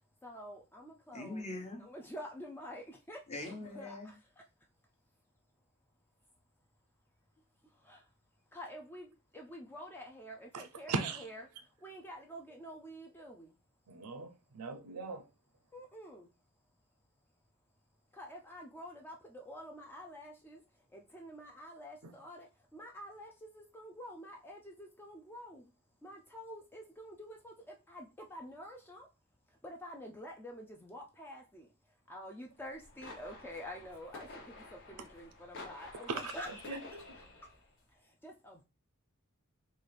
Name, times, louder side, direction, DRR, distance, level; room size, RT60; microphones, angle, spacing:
voice 1, 0.0-1.5 1.8-4.9 6.2-6.4 7.5-13.6 15.7-16.5 18.1-25.7 26.0-29.1 29.5-37.5 37.9-38.6, equal, 10° left, 0.4 m, -49 dB
voice 2, 1.1-1.8 3.3-4.1, left 2 dB, 30° left, 0.9 m, -42 dB
voice 3, 10.5-11.2 13.9-15.3 36.1-36.2 36.7-36.8, right 4 dB, 85° right, 0.5 m, -38 dB
sound 1, 32.6-37.7, left 3 dB, 55° left, 0.9 m, -51 dB
3.9 x 2.4 x 3.2 m
head